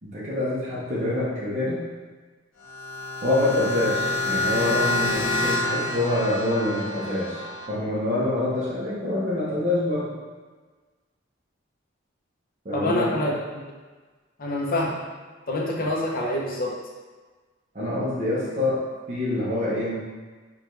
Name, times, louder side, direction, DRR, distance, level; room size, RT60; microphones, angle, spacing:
voice 1, 0.0-1.8 3.2-10.1 12.6-13.2 17.7-19.9, left 1 dB, 35° right, -8 dB, 0.8 m, -26 dB
sound 1, 2.6-7.7, left 2 dB, 85° left, 1.0 m, -27 dB
voice 2, 12.7-13.4 14.4-14.9 15.5-16.8, left 1 dB, 45° left, -2 dB, 0.7 m, -25 dB
4.9 x 2.4 x 3.1 m, 1.3 s
head